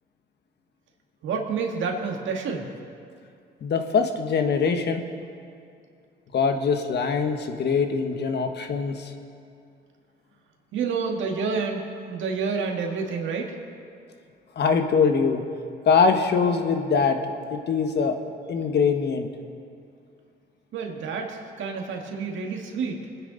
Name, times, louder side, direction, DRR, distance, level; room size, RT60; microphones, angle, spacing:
voice 1, 1.2-2.7 10.7-13.6 20.7-23.1, right 5 dB, 75° right, 1 dB, 2.0 m, -29 dB
voice 2, 3.6-5.1 6.3-9.1 14.5-15.4 15.8-17.2 17.5-18.2 18.5-19.3, left 5 dB, 60° left, 5 dB, 1.4 m, -23 dB
23.0 x 9.5 x 4.1 m, 2.4 s
cardioid pair, 90°, 20 cm